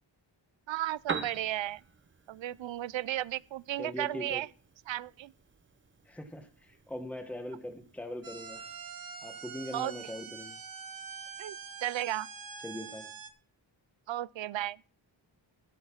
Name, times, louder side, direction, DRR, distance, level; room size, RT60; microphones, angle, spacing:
voice 1, 0.7-1.8 2.3-4.5 4.9-5.3 9.7-9.9 11.4-12.3 14.1-14.8, right 13 dB, 75° right, 0.5 m, -34 dB
Piano, 0.8-8.8, right 5 dB, 25° right, 0.7 m, -45 dB
voice 2, 3.8-4.4 6.0-8.7 9.2-10.6 12.6-13.1, left 1 dB, 5° left, 1.2 m, -41 dB
sound 1, 8.2-13.3, right 6 dB, 50° right, 1.2 m, -45 dB
15.5 x 5.6 x 5.8 m
wide cardioid pair, 160°, 46 cm